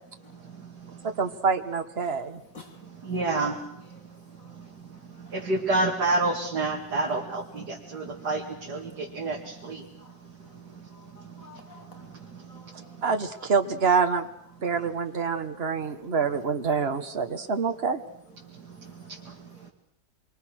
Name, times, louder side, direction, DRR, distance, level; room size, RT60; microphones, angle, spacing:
voice 1, 1.2-2.4 13.0-14.3 14.6-18.0, right 5 dB, 35° right, 1.6 m, -26 dB
voice 2, 2.0-2.9 3.3-3.5 3.9-4.1 4.3-5.5 8.1-8.3 8.9-9.0 9.6-13.0 13.3-13.6 15.1-16.1 17.2-17.7 18.3-19.3 19.5-19.7, left 3 dB, 50° left, 2.5 m, -54 dB
voice 3, 3.0-3.6 5.3-9.8, right 2 dB, 65° right, 3.1 m, -28 dB
27.0 x 24.0 x 6.4 m
omnidirectional pair, 1.9 m